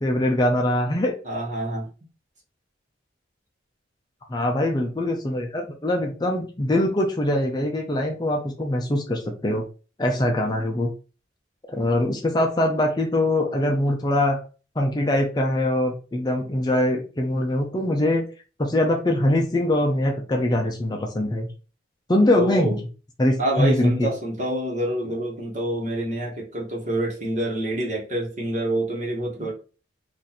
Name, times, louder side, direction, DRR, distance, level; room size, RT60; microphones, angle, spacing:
voice 1, 0.0-1.1 4.3-9.6 10.0-10.9 11.7-14.4 14.8-18.3 18.6-21.5 22.1-22.8 23.2-24.1, left 1 dB, 20° left, 2 dB, 0.5 m, -23 dB
voice 2, 1.2-1.9 22.3-22.8 23.4-29.5, right 1 dB, 40° right, -2 dB, 1.2 m, -27 dB
2.9 x 2.6 x 4.0 m, 0.35 s
head